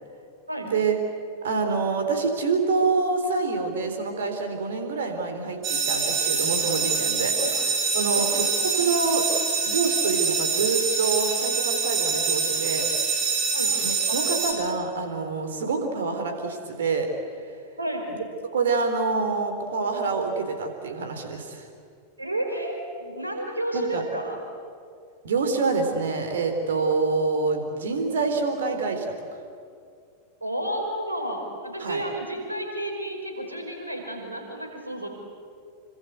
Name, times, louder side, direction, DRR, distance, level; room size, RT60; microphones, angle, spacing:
voice 1, 0.6-1.0 1.4-7.3 7.9-8.4 8.8-9.3 9.7-12.9 13.8-17.1 18.5-21.7 23.7-24.0 25.2-29.1 31.8-32.0, right 4 dB, 65° right, 6 dB, 3.9 m, -26 dB
sound 1, 5.6-14.5, right 5 dB, 30° right, 6.3 m, -25 dB
voice 2, 17.8-18.1 22.2-24.4 30.4-35.1, right 1 dB, 85° right, 2 dB, 5.2 m, -31 dB
27.0 x 25.0 x 8.2 m, 2.3 s
figure-of-eight pair, 90°, 0 cm